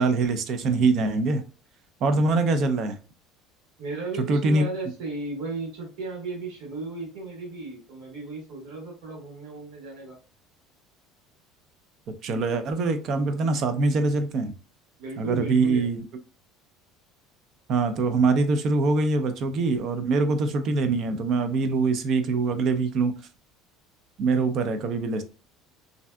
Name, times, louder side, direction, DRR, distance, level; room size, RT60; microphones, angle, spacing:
voice 1, 0.0-1.4 2.0-3.0 4.3-4.6 12.2-14.5 15.2-16.0 17.7-23.1 24.2-25.2, right 3 dB, 40° right, 0.4 m, -23 dB
voice 2, 3.8-10.2 15.0-15.9, right 3 dB, 80° right, 1.4 m, -35 dB
3.3 x 2.6 x 2.2 m
cardioid pair, 155°, 0 cm